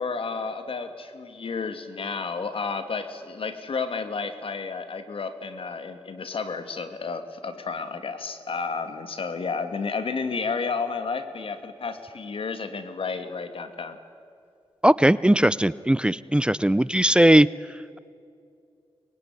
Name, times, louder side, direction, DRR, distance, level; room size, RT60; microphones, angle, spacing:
voice 1, 0.0-14.0, left 4 dB, 65° left, 9 dB, 2.3 m, -31 dB
voice 2, 14.8-17.5, right 1 dB, 10° right, 18 dB, 0.6 m, -18 dB
24.0 x 21.5 x 9.8 m, 2.4 s
cardioid pair, 65°, 10 cm